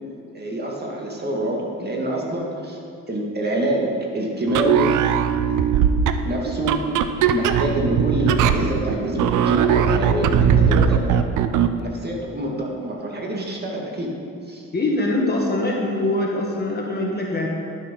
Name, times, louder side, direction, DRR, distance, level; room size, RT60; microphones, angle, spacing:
voice 1, 0.3-2.8 3.1-5.0 6.2-7.0 7.3-11.2 11.7-14.2 14.5-14.7, right 1 dB, 35° right, -1 dB, 2.1 m, -26 dB
sound 1, 4.5-11.8, right 7 dB, 80° right, 0.6 m, -20 dB
voice 2, 14.7-17.5, left 2 dB, 30° left, -1 dB, 1.7 m, -23 dB
11.5 x 7.3 x 5.5 m, 2.4 s
cardioid pair, 90°, 30 cm